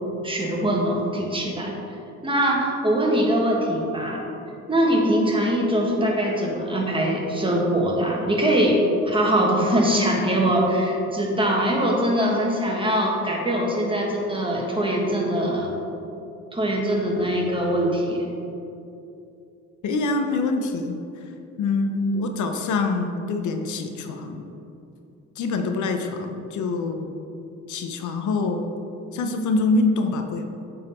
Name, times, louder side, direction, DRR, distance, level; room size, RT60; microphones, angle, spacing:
voice 1, 0.2-1.7 2.2-4.2 4.7-15.7 16.5-18.3, right 1 dB, 15° right, -2 dB, 1.4 m, -22 dB
voice 2, 19.8-21.0 21.6-24.5 25.4-27.1 27.7-28.7 29.1-30.5, left 3 dB, 75° left, 5 dB, 0.7 m, -25 dB
8.8 x 4.0 x 4.4 m, 2.8 s
cardioid pair, 90°, 30 cm